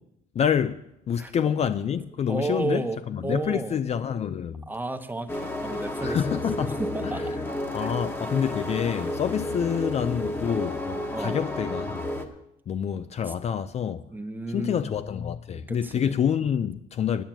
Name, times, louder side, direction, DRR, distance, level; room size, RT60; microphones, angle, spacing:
voice 1, 0.3-4.7 6.0-7.3 7.7-12.1 12.7-14.1 14.5-17.2, left 8 dB, 40° left, 0.5 m, -27 dB
voice 2, 2.3-3.8 4.7-7.4 7.8-8.2 11.1-11.4 13.3-13.4 14.1-14.9 15.5-16.1, right 2 dB, 10° right, 1.0 m, -33 dB
sound 1, 5.3-12.3, left 1 dB, 15° left, 1.2 m, -31 dB
9.2 x 8.9 x 7.3 m
cardioid pair, 110°, 17 cm